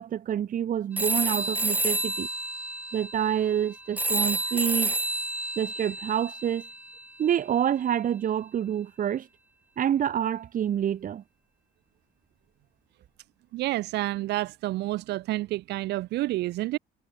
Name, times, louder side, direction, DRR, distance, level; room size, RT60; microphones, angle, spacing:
voice 1, 0.0-2.3 2.9-4.9 5.6-6.7 7.2-9.3 9.8-11.2, right 9 dB, 55° right, 6.4 m, -27 dB
sound 1, 1.0-7.1, right 2 dB, 10° right, 1.0 m, -30 dB
voice 2, 13.5-16.8, right 17 dB, 80° right, 4.9 m, -29 dB
cardioid pair, 110°, 17 cm